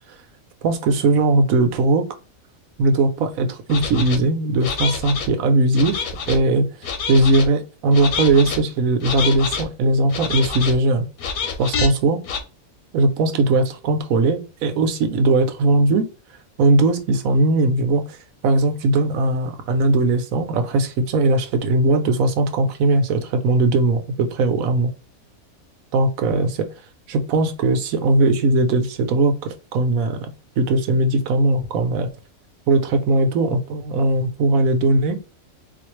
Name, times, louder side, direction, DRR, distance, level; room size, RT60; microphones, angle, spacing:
voice 1, 0.6-2.0 2.8-11.0 11.6-12.2 12.9-16.1 16.6-18.2 18.4-24.9 25.9-26.7 27.1-32.1 32.7-35.2, right 2 dB, 75° right, 7 dB, 1.1 m, -19 dB
sound 1, 3.7-4.2 4.6-5.3 5.7-6.4 6.8-7.5 7.9-8.6 9.0-9.6 10.1-10.7 11.2-11.9 12.2-12.4, left 5 dB, 90° left, 1.2 m, -27 dB
4.0 x 2.5 x 3.0 m, 0.33 s
omnidirectional pair, 1.5 m